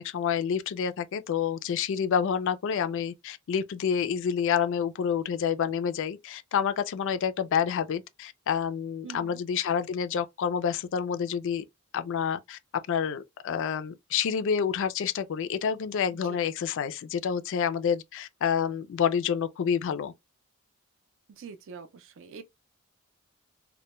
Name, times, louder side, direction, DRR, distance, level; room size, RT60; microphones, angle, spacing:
voice 1, 0.0-11.6 11.9-12.6 12.9-20.1, left 7 dB, 60° left, 0.3 m, -28 dB
voice 2, 9.0-9.4 16.3-16.4 21.4-22.5, right 5 dB, 60° right, 0.4 m, -44 dB
2.2 x 2.1 x 2.9 m
head